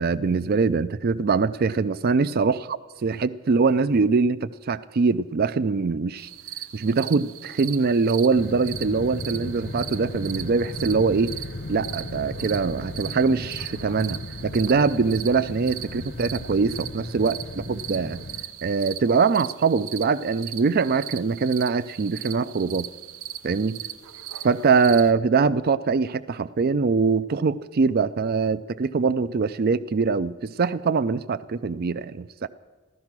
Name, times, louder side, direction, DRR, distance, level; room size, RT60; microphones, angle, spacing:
voice 1, 0.0-2.6 3.0-6.3 6.7-11.3 11.7-18.2 18.6-22.9 23.4-23.8 24.4-32.5, right 4 dB, 45° right, 13 dB, 0.4 m, -23 dB
sound 1, 6.2-25.1, right 11 dB, 80° right, 0.6 m, -39 dB
sound 2, 8.3-18.4, left 2 dB, 50° left, 0.8 m, -36 dB
15.0 x 13.0 x 6.0 m, 1.2 s
head